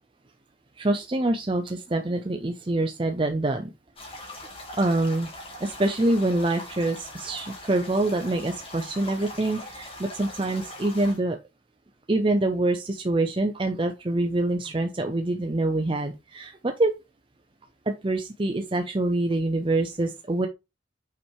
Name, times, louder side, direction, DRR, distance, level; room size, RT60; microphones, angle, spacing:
voice 1, 0.8-3.7 4.1-4.2 4.7-5.3 5.6-11.4 12.1-16.9 17.9-20.5, right 2 dB, 25° right, 4 dB, 0.6 m, -25 dB
sound 1, 4.0-11.2, left 1 dB, 30° left, 2.3 m, -41 dB
5.9 x 4.7 x 4.5 m, 0.25 s
head